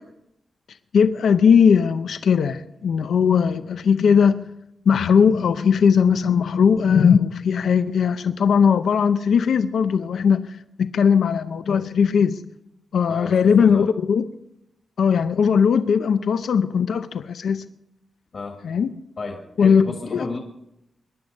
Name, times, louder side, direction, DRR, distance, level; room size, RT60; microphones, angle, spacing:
voice 1, 0.9-4.5 4.9-10.6 10.9-12.4 12.9-14.3 15.0-17.6 18.6-18.9 19.6-19.9 20.1-20.3, left 6 dB, 80° left, 10 dB, 0.6 m, -18 dB
voice 2, 13.1-13.9 18.3-18.6 19.2-20.4, left 3 dB, 45° left, 3 dB, 1.8 m, -32 dB
23.0 x 11.0 x 5.3 m, 0.85 s
wide cardioid pair, 160°, 0 cm